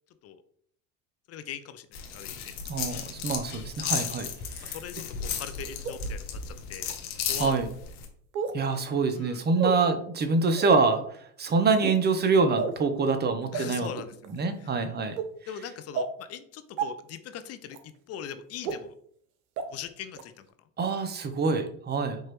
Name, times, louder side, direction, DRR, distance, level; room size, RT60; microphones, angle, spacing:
voice 1, 1.3-1.9 2.1-2.5 4.6-6.9 7.3-7.5 9.1-9.4 13.5-14.1 14.6-14.7 15.5-18.9 19.7-20.5, left 9 dB, 40° left, 11 dB, 0.4 m, -40 dB
sound 1, 1.9-8.1, left 7 dB, 60° left, 1.0 m, -34 dB
voice 2, 2.7-4.3 4.6-4.8 7.4-7.7 8.5-11.0 11.4-13.9 14.3-15.2 20.8-22.2, right 4 dB, 25° right, 8 dB, 0.6 m, -25 dB
sound 2, 5.8-5.9 6.8-6.9 8.3-8.6 9.6-9.7 10.5-10.8 11.7-12.0 12.6-12.8 13.5-13.6 14.2-14.4 15.2-15.3 15.9-16.1 16.8-16.9 17.7-17.8 18.6-18.7 19.6-19.7 20.2-20.3, right 6 dB, 85° right, 0.7 m, -31 dB
4.5 x 3.0 x 3.0 m, 0.63 s
supercardioid pair, 90°, 42 cm